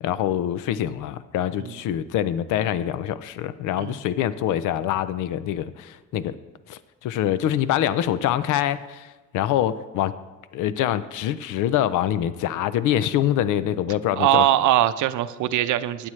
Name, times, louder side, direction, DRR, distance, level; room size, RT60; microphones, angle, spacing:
voice 1, 0.0-6.4 6.7-10.1 10.5-14.5, left 11 dB, 90° left, 14 dB, 0.5 m, -25 dB
voice 2, 14.1-16.1, right 13 dB, 80° right, 12 dB, 0.6 m, -21 dB
15.5 x 10.0 x 3.2 m, 1.2 s
cardioid pair, 90°, 30 cm